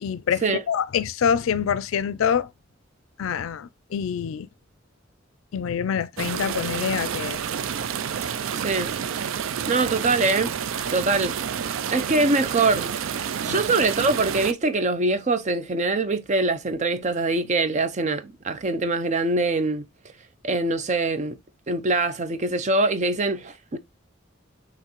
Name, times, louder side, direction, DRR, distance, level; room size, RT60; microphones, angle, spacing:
voice 1, 0.0-2.5 3.2-4.5 5.5-7.4, left 7 dB, 85° left, 0.4 m, -25 dB
sound 1, 6.2-14.5, right 8 dB, 85° right, 0.4 m, -29 dB
voice 2, 8.5-8.9 9.6-10.5 10.9-11.4 11.9-19.8 20.4-21.4 21.7-23.8, right 3 dB, 35° right, 0.5 m, -23 dB
5.7 x 3.0 x 3.0 m
head